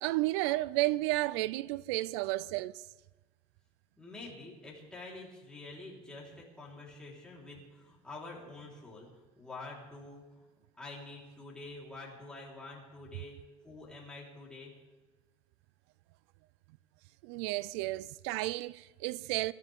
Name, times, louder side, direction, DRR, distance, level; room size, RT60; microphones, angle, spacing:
voice 1, 0.0-2.8 17.2-19.5, right 18 dB, 85° right, 0.4 m, -32 dB
voice 2, 4.0-9.1 9.4-10.2 10.8-13.4 13.6-14.7, left 2 dB, 5° left, 3.9 m, -47 dB
26.0 x 12.5 x 3.6 m
cardioid pair, 165°, 14 cm